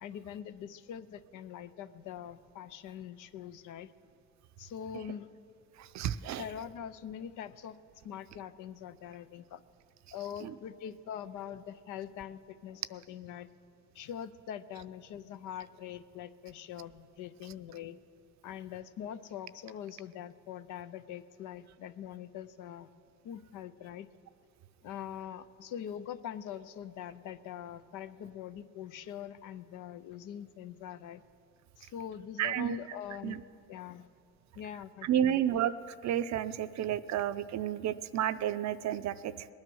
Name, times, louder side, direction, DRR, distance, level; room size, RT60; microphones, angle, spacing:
voice 1, 0.0-3.9 4.6-5.3 6.3-7.8 8.0-9.6 10.1-13.5 13.9-18.0 18.4-22.9 23.2-24.1 24.8-31.2 31.8-33.4 33.7-34.1 34.5-35.4, left 9 dB, 85° left, 13 dB, 0.6 m, -43 dB
voice 2, 5.8-6.4 10.4-10.5 32.4-32.8 33.2-33.4 35.0-35.7 36.0-39.5, right 10 dB, 65° right, 13 dB, 0.6 m, -31 dB
20.0 x 9.6 x 6.2 m, 2.5 s
cardioid pair, 90°, 30 cm